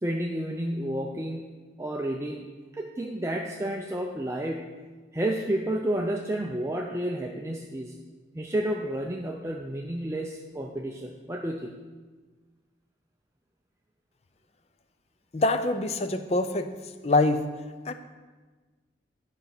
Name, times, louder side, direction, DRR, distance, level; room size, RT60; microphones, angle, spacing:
voice 1, 0.0-2.5 2.7-4.7 5.1-7.9 8.3-11.7, right 1 dB, 15° right, 1 dB, 0.4 m, -31 dB
voice 2, 15.3-16.7 17.0-17.5 17.9-18.0, left 2 dB, 35° left, 10 dB, 0.5 m, -24 dB
10.5 x 5.3 x 5.9 m, 1.3 s
head